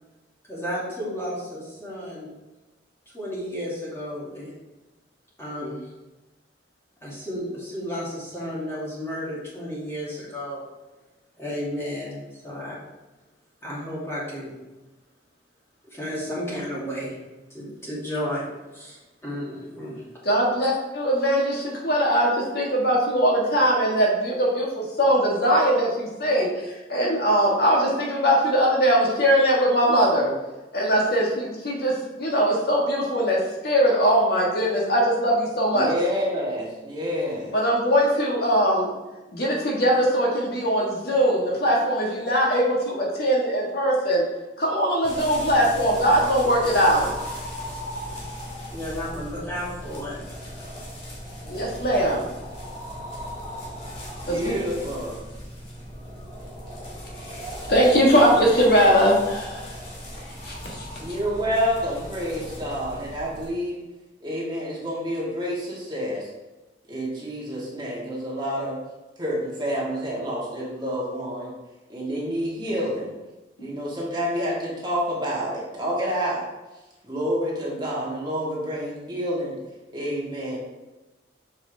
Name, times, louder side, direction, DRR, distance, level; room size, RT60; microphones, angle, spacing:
voice 1, 0.5-2.3 3.1-4.5 5.4-5.9 7.0-10.6 11.4-12.8 13.6-14.5 15.9-17.1 17.5-18.5 18.7-20.0 20.6-20.7 48.7-50.2, equal, 15° left, -8 dB, 2.5 m, -32 dB
voice 2, 20.2-30.3 30.7-33.4 33.6-35.9 37.5-38.9 39.3-44.2 44.6-47.1 51.5-52.3 54.3-54.5 57.7-59.6 60.4-60.9, equal, 60° left, -2 dB, 1.5 m, -21 dB
voice 3, 35.7-37.5 54.2-55.2 61.0-63.8 64.2-66.3 66.9-68.8 69.2-71.5 71.9-73.1 73.6-76.4 77.0-79.5 79.9-80.6, equal, 25° right, -5 dB, 1.8 m, -28 dB
sound 1, 45.0-63.5, left 1 dB, 35° left, 2.3 m, -37 dB
7.1 x 5.5 x 3.4 m, 1.1 s
head